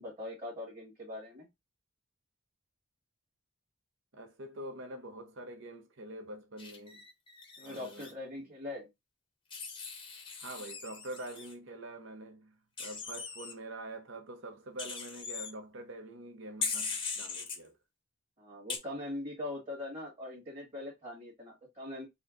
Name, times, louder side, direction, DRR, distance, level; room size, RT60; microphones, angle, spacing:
voice 1, 0.0-1.5 7.6-8.9 18.4-22.1, left 1 dB, 30° right, 1.7 m, -42 dB
voice 2, 4.1-7.0 7.6-8.1 8.4-8.5 10.4-17.7, right 1 dB, 60° right, 0.9 m, -45 dB
Wild animals, 6.6-8.1 9.5-11.5 12.8-13.5 14.8-15.5 16.6-17.6 18.7-18.8, left 5 dB, 25° left, 0.8 m, -39 dB
4.3 x 2.2 x 3.8 m
head